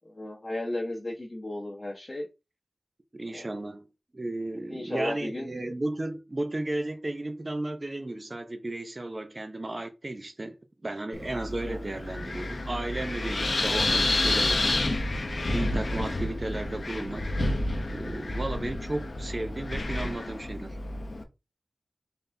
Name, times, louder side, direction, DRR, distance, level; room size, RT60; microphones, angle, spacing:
voice 1, 0.0-2.3 3.3-3.5 4.7-5.5 11.7-12.0 16.0-16.1, left 1 dB, 40° left, 1.2 m, -35 dB
voice 2, 3.1-3.9 4.1-10.6 10.8-14.8 15.5-17.3 17.9-20.8, right 2 dB, 40° right, 0.7 m, -34 dB
Wind, 11.1-21.2, left 2 dB, 70° left, 0.7 m, -29 dB
4.0 x 3.5 x 2.7 m
wide cardioid pair, 60°, 0 cm